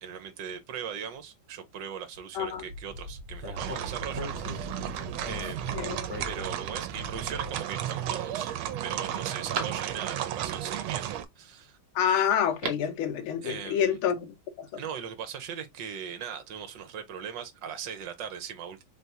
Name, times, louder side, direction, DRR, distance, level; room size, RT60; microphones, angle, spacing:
voice 1, 0.0-4.9 5.3-5.8 6.2-8.5 8.8-11.8 13.4-14.0 14.8-18.8, right 8 dB, 70° right, 1.4 m, -39 dB
Speech, 2.7-7.6, equal, 30° right, 1.5 m, -40 dB
sound 1, 3.6-11.3, right 11 dB, 85° right, 1.4 m, -34 dB
voice 2, 5.4-6.0 11.9-14.8, left 8 dB, 85° left, 1.6 m, -28 dB
Telephone, 12.4-13.0 13.3-13.4, right 5 dB, 50° right, 1.0 m, -39 dB
3.9 x 3.4 x 2.7 m
omnidirectional pair, 2.2 m